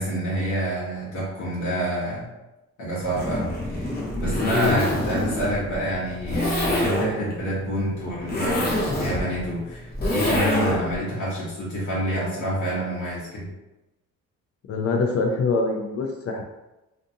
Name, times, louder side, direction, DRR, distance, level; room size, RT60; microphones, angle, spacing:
voice 1, 0.0-2.3 2.8-13.5, equal, 70° left, -8 dB, 1.0 m, -27 dB
Zipper (clothing), 3.0-11.0, left 1 dB, 30° left, 0.9 m, -26 dB
voice 2, 14.7-16.4, left 4 dB, 50° left, 2 dB, 0.4 m, -24 dB
2.6 x 2.4 x 2.6 m, 1.0 s
cardioid pair, 90°, 30 cm